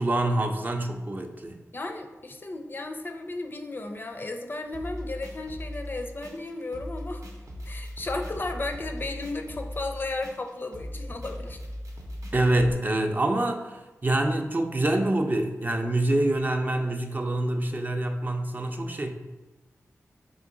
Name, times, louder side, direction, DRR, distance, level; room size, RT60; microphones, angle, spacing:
voice 1, 0.0-1.6 12.3-19.1, right 1 dB, 35° right, 4 dB, 0.4 m, -26 dB
voice 2, 1.7-7.2 7.6-11.6, left 2 dB, 40° left, 5 dB, 0.4 m, -34 dB
sound 1, 4.7-12.7, equal, 80° right, 0.7 m, -39 dB
3.7 x 2.9 x 3.7 m, 1.1 s
wide cardioid pair, 65°, 5 cm